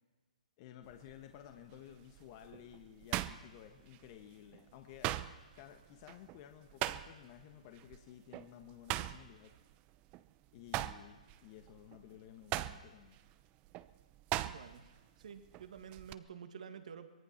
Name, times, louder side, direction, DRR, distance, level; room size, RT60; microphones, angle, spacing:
voice 1, 0.6-5.2 5.5-9.6 10.5-13.2, left 11 dB, 40° left, 5 dB, 1.4 m, -54 dB
sound 1, 0.9-1.2 1.7-4.2 4.5-7.4 7.7-8.0 8.3-10.3 10.6-15.0 15.2-16.1, right 15 dB, 30° right, 0.7 m, -40 dB
voice 2, 14.4-14.9 15.2-17.1, right 7 dB, 65° right, 8 dB, 2.0 m, -49 dB
23.5 x 20.0 x 5.9 m, 1.3 s
hypercardioid pair, 135°, 4 cm